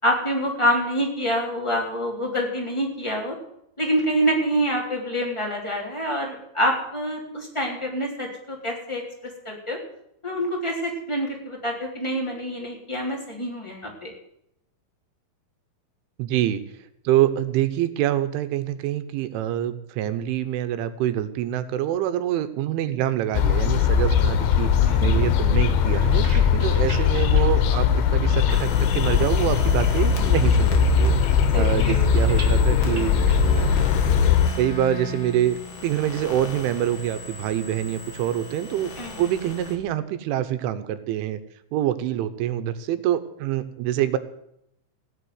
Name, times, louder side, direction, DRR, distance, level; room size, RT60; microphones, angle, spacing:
voice 1, 0.0-3.3 3.8-9.0 9.4-9.8 10.2-14.1 24.8-25.4 31.5-32.0 39.0-39.2, equal, 5° left, -1 dB, 2.8 m, -26 dB
voice 2, 16.2-16.6 17.0-24.7 25.0-33.8 34.6-38.9 39.2-41.4 41.7-44.2, right 12 dB, 85° right, 11 dB, 3.4 m, -26 dB
sound 1, 23.3-34.5, left 7 dB, 85° left, 3.6 m, -20 dB
sound 2, 25.5-29.2 29.5-30.4 30.6-33.9, right 3 dB, 55° right, 0.8 m, -43 dB
sound 3, 28.5-39.8, left 2 dB, 55° left, 3.3 m, -36 dB
17.0 x 7.3 x 9.6 m, 0.77 s
omnidirectional pair, 5.4 m